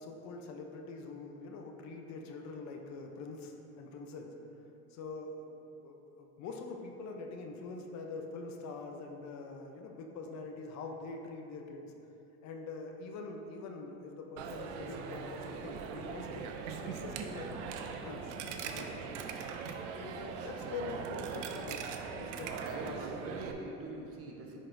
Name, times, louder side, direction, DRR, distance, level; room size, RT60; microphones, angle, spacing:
voice 1, 0.0-4.4 4.9-11.9 12.4-16.4 16.8-17.6 17.8-18.3 18.6-19.1 19.9-21.9 22.1-23.1, left 3 dB, 50° left, 3 dB, 0.7 m, -44 dB
Coin (dropping), 14.4-23.5, right 6 dB, 90° right, 0.6 m, -41 dB
voice 2, 22.5-24.6, right 2 dB, 40° right, 0 dB, 1.0 m, -43 dB
10.0 x 3.9 x 2.6 m, 2.9 s
supercardioid pair, 110°, 35 cm